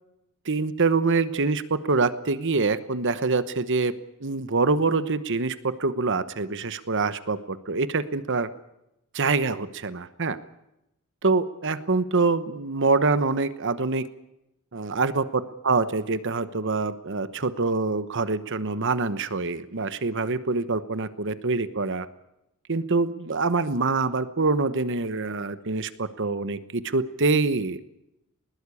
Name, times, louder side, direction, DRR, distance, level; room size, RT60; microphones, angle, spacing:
voice 1, 0.4-3.9 4.2-8.5 9.1-10.4 11.2-14.0 14.7-15.2 15.6-22.1 22.7-27.9, right 3 dB, 55° right, 13 dB, 1.1 m, -25 dB
20.5 x 20.0 x 8.5 m, 0.86 s
head